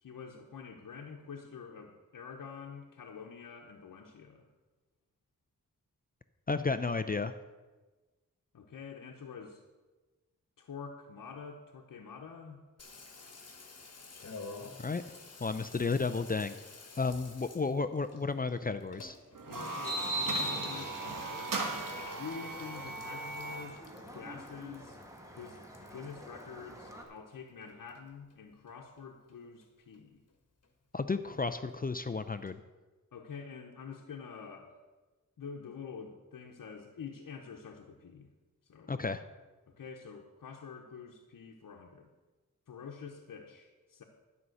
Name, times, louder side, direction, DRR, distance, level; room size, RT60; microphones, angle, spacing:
voice 1, 0.0-4.5 8.5-9.6 10.6-12.6 19.5-21.6 22.1-23.8 24.1-25.0 25.3-30.2 33.1-34.8 35.4-38.3 38.7-38.9 39.7-42.1 42.7-44.0, left 6 dB, 90° left, 1 dB, 1.0 m, -47 dB
voice 2, 6.5-7.3 14.8-15.0 15.4-16.6 17.0-19.2 30.9-32.6 38.9-39.2, left 4 dB, 30° left, 10 dB, 0.5 m, -32 dB
Water tap faucet / Bathtub (filling or washing), 12.8-27.3 27.6-28.4 28.7-28.8 29.0-29.1 29.3-29.7 29.9-30.0 30.3-30.4 30.6-30.7 31.0-31.1 31.3-31.4 31.7-31.8 32.1-32.2 32.5-32.6, left 4 dB, 50° left, 1.6 m, -52 dB
sound 1, 19.4-23.8, right 3 dB, 85° right, 1.6 m, -38 dB
sound 2, 19.8-27.0, right 1 dB, 10° right, 1.8 m, -41 dB
12.5 x 5.6 x 7.8 m, 1.2 s
wide cardioid pair, 90°, 32 cm